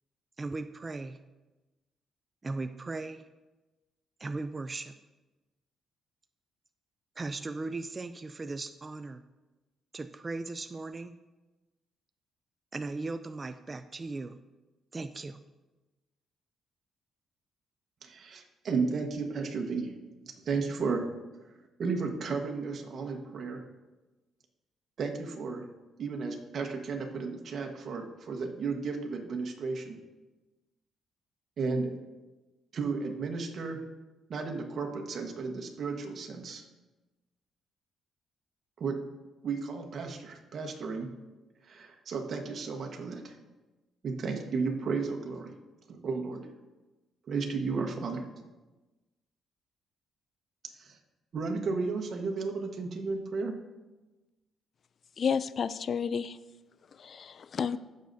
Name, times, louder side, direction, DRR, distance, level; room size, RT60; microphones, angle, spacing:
voice 1, 0.4-1.2 2.4-3.2 4.2-5.0 7.2-9.2 9.9-11.2 12.7-14.4 14.9-15.4, right 3 dB, 25° right, 9 dB, 0.3 m, -37 dB
voice 2, 18.0-19.9 20.4-21.1 21.8-23.6 25.0-25.7 26.0-30.0 31.6-31.9 32.7-33.8 34.3-36.6 38.8-39.0 39.4-41.1 41.6-43.4 44.0-45.5 45.9-46.5 47.3-48.2 50.8-51.0 51.3-53.6, right 4 dB, 55° right, 3 dB, 1.3 m, -33 dB
voice 3, 55.2-56.4 57.0-57.8, left 6 dB, 50° left, 14 dB, 0.3 m, -31 dB
15.5 x 6.5 x 2.7 m, 1.1 s
cardioid pair, 90°, 0 cm